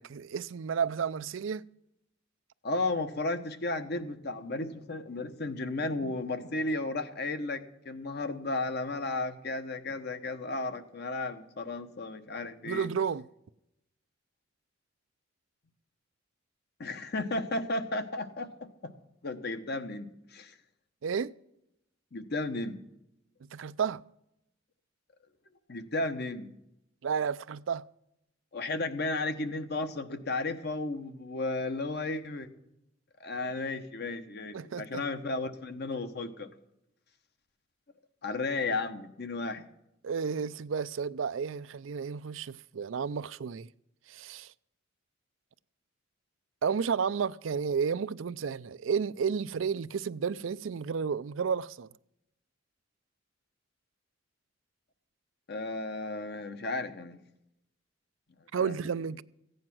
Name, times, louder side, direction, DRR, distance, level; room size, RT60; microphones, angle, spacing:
voice 1, 0.0-1.6 12.6-13.3 21.0-21.3 23.5-24.0 27.0-27.8 34.5-35.0 40.0-43.7 44.1-44.5 46.6-51.9 58.5-59.2, right 6 dB, 90° right, 0.4 m, -32 dB
voice 2, 2.6-12.9 16.8-18.5 18.8-18.9 19.2-20.5 22.1-22.8 25.7-26.5 28.5-32.5 33.2-36.5 38.2-39.6 55.5-57.2 58.6-58.7, left 2 dB, 60° left, 1.1 m, -34 dB
15.5 x 9.2 x 6.1 m
head